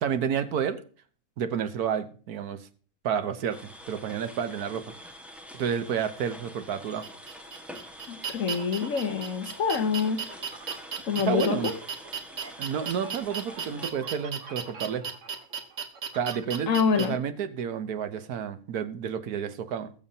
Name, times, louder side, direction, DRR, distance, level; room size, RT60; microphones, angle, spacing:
voice 1, 0.0-0.8 1.4-2.7 3.0-4.9 5.5-7.1 11.3-11.7 12.6-15.1 16.1-19.9, right 8 dB, 85° right, 11 dB, 1.4 m, -30 dB
sound 1, 3.5-13.9, equal, ahead, 1.3 m, -46 dB
sound 2, 7.0-17.0, right 6 dB, 55° right, 1.5 m, -36 dB
voice 2, 8.1-10.2 11.1-11.7 16.7-17.2, left 6 dB, 60° left, 9 dB, 1.3 m, -26 dB
20.5 x 7.2 x 2.8 m, 0.42 s
omnidirectional pair, 1.6 m